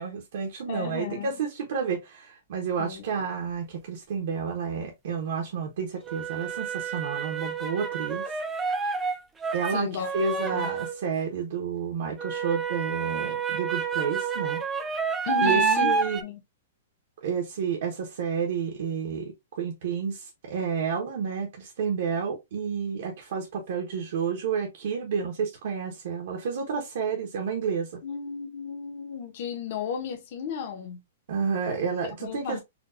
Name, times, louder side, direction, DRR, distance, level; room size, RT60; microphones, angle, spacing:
voice 1, 0.0-8.2 9.5-9.9 10.1-14.6 15.4-16.2 17.2-28.0 31.3-32.6, right 6 dB, 55° right, 0.9 m, -30 dB
voice 2, 0.7-1.3 2.8-3.0 9.7-10.7 15.2-15.9 16.2-16.4 28.0-31.0 32.2-32.6, left 7 dB, 40° left, 0.9 m, -34 dB
sound 1, 3.2-3.3 6.1-11.1 12.2-16.2, right 5 dB, 10° right, 0.4 m, -29 dB
4.4 x 2.3 x 2.5 m
hypercardioid pair, 175°, 0 cm